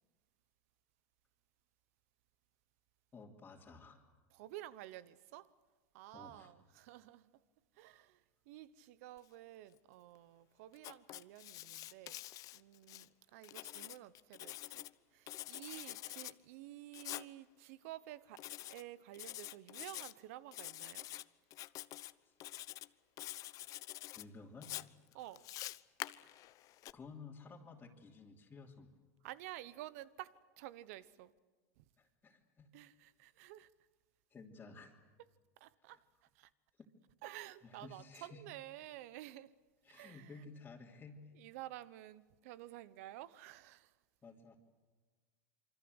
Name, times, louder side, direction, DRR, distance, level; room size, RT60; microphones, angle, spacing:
voice 1, 3.1-4.0 6.1-6.5 22.2-22.3 24.2-24.7 25.1-25.2 26.9-28.9 32.0-32.7 34.3-35.0 37.6-38.4 39.8-41.3 44.2-44.6, left 4 dB, 20° left, 2.9 m, -54 dB
voice 2, 4.3-5.5 5.9-7.3 7.7-12.2 12.5-21.1 25.1-25.5 29.2-31.3 31.8-31.9 32.7-33.7 35.6-36.0 36.3-36.5 37.2-39.5 39.9-40.4 41.3-43.9, right 15 dB, 70° right, 1.1 m, -52 dB
Writing, 10.8-13.1 13.4-14.9 15.3-16.3 16.9-17.3 18.4-18.8 19.1-20.1 20.5-21.2 21.5-22.1 22.4-22.9 23.2-24.2 24.6-26.9, left 15 dB, 45° left, 0.8 m, -47 dB
26.5 x 25.0 x 8.0 m
supercardioid pair, 120°, 8 cm